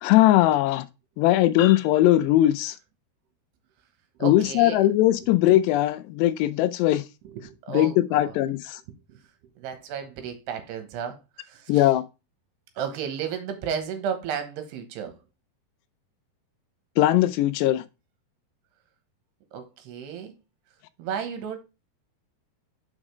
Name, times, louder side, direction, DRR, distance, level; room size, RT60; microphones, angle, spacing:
voice 1, 0.0-0.9 1.2-2.8 4.2-7.0 7.7-8.8 11.7-12.0 17.0-17.8, left 14 dB, 85° left, 2.7 m, -20 dB
voice 2, 4.2-4.8 5.2-5.3 7.2-8.3 9.1-9.2 9.6-11.9 12.8-15.2 19.5-20.3 21.0-21.6, right 7 dB, 75° right, 3.2 m, -33 dB
6.4 x 5.0 x 4.8 m
omnidirectional pair, 4.9 m